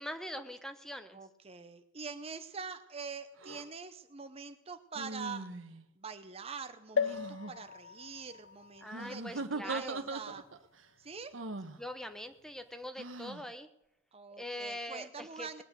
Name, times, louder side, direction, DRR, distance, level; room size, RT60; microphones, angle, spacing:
voice 1, 0.0-1.2 8.8-10.1 11.8-13.7 14.4-15.5, left 1 dB, 5° left, 8 dB, 1.0 m, -42 dB
voice 2, 1.1-5.5 6.0-10.5 11.0-11.3 14.1-15.6, right 5 dB, 30° right, 9 dB, 0.8 m, -45 dB
sound 1, 3.4-3.6 4.9-5.8 6.9-7.5 8.9-10.6 11.3-11.8 13.0-13.4, right 3 dB, 80° right, 1.2 m, -40 dB
sound 2, 7.0-10.6 11.2-11.3 11.5-11.6, left 6 dB, 85° left, 0.6 m, -38 dB
20.0 x 8.6 x 6.7 m, 0.84 s
head